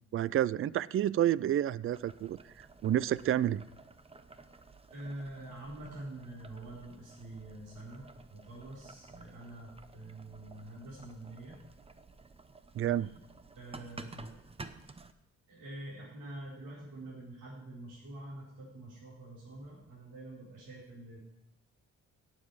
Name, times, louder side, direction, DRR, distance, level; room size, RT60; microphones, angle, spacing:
voice 1, 0.1-2.4 2.8-3.6 12.7-13.1, right 12 dB, 45° right, 21 dB, 0.4 m, -29 dB
Boiling, 1.9-15.1, right 3 dB, 20° right, 0.9 m, -53 dB
voice 2, 4.9-11.5 12.8-13.1 13.5-14.4 15.5-21.2, right 1 dB, 85° right, -7 dB, 4.4 m, -46 dB
17.5 x 7.5 x 4.9 m, 0.78 s
cardioid pair, 90°, 30 cm